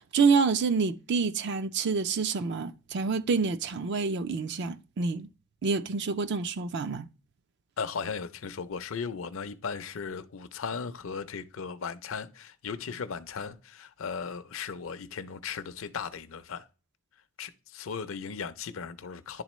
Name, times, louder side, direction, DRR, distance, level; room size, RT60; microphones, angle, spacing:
voice 1, 0.0-5.3 5.6-7.1, right 5 dB, 50° right, 0.4 m, -27 dB
voice 2, 7.8-16.7 17.4-19.4, left 6 dB, 65° left, 0.5 m, -37 dB
10.5 x 3.6 x 3.1 m
head